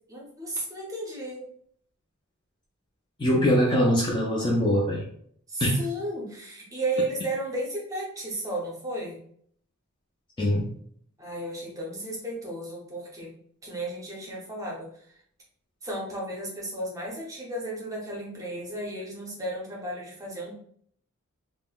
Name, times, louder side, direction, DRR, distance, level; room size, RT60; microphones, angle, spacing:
voice 1, 0.1-1.5 5.5-9.2 11.2-13.3 13.6-15.1 15.8-20.5, right 1 dB, 15° right, -3 dB, 0.7 m, -34 dB
voice 2, 3.2-5.0 5.6-5.8 10.4-10.7, equal, 20° left, -2 dB, 0.4 m, -22 dB
3.6 x 2.0 x 2.3 m, 0.64 s
head